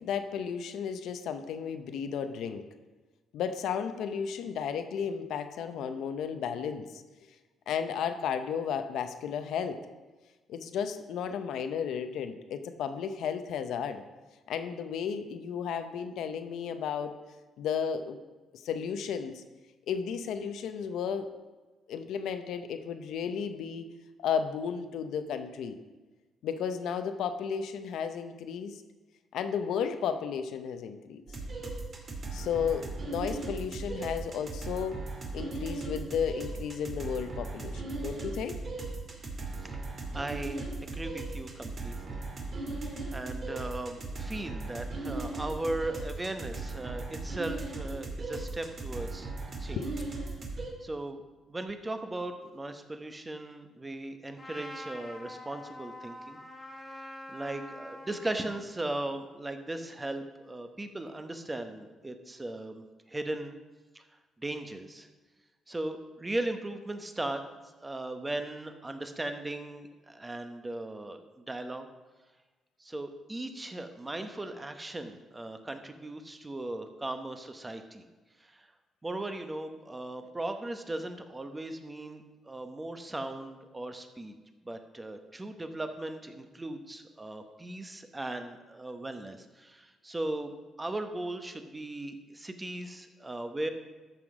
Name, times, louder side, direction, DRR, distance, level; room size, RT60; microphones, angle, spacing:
voice 1, 0.0-2.6 3.3-7.0 7.7-9.8 10.5-14.0 14.5-17.2 17.6-18.2 18.6-19.4 19.9-21.3 21.9-23.9 24.2-25.8 26.4-28.8 29.3-31.2 32.3-35.0 35.3-38.6 49.8-49.9, left 7 dB, 80° left, 8 dB, 0.8 m, -33 dB
sound 1, 31.3-50.7, right 3 dB, 45° right, 2.2 m, -38 dB
voice 2, 39.6-42.2 43.1-49.3 49.6-49.9 50.8-51.2 51.5-56.4 57.0-62.8 63.1-63.6 63.9-64.0 64.4-65.1 65.7-67.4 67.8-71.9 72.8-78.1 78.4-78.7 79.0-84.4 84.6-90.5 90.8-93.7, right 2 dB, 20° right, 7 dB, 1.1 m, -38 dB
Trumpet, 54.4-58.7, left 1 dB, 25° left, 1.8 m, -45 dB
13.0 x 5.9 x 4.9 m, 1.2 s
cardioid pair, 90°, 0 cm